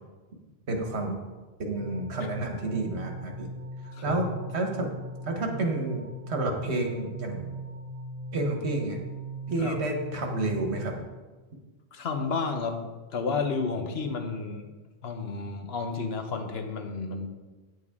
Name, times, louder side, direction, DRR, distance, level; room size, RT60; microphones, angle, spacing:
voice 1, 0.7-1.2 1.6-3.5 4.0-4.9 5.2-7.5 8.3-9.0 9.5-10.9, right 2 dB, 85° right, 3 dB, 1.5 m, -30 dB
sound 1, 1.7-11.0, right 1 dB, 20° right, 2.0 m, -40 dB
voice 2, 11.9-12.8 13.1-14.7 15.0-17.3, left 4 dB, 70° left, 5 dB, 1.2 m, -31 dB
9.2 x 8.0 x 3.6 m, 1.2 s
omnidirectional pair, 1.1 m